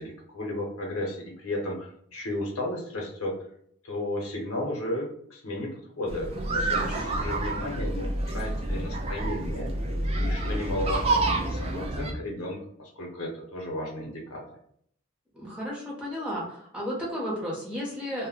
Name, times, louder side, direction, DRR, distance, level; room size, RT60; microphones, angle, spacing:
voice 1, 0.0-3.4 3.8-9.7 10.1-14.4, left 1 dB, 70° left, 0 dB, 0.7 m, -34 dB
sound 1, 6.1-12.1, right 2 dB, 25° right, 0.3 m, -28 dB
voice 2, 6.3-7.3 15.3-18.3, equal, 5° right, -5 dB, 0.7 m, -34 dB
2.1 x 2.0 x 3.6 m, 0.65 s
head